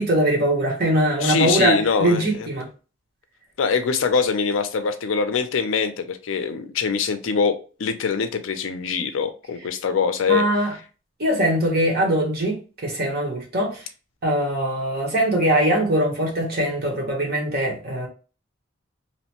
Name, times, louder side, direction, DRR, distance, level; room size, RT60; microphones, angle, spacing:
voice 1, 0.0-2.6 10.3-10.7 11.2-13.9 14.2-18.1, right 1 dB, 45° right, 1.0 m, -22 dB
voice 2, 1.2-2.5 3.6-10.4, left 5 dB, 70° left, 0.4 m, -23 dB
2.9 x 2.1 x 2.9 m
head